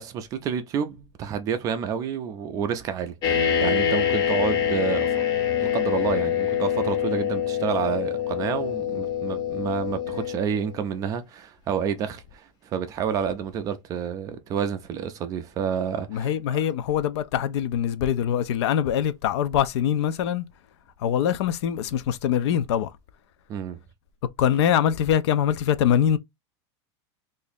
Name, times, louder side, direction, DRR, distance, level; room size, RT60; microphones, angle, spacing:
voice 1, 0.0-5.2 5.6-16.6 23.5-23.8, right 7 dB, 20° right, 0.4 m, -29 dB
sound 1, 3.2-10.7, left 9 dB, 25° left, 0.7 m, -25 dB
voice 2, 16.1-20.5 21.0-22.9 24.4-26.2, left 9 dB, 65° left, 0.5 m, -23 dB
2.8 x 2.6 x 4.0 m
supercardioid pair, 165°, 15 cm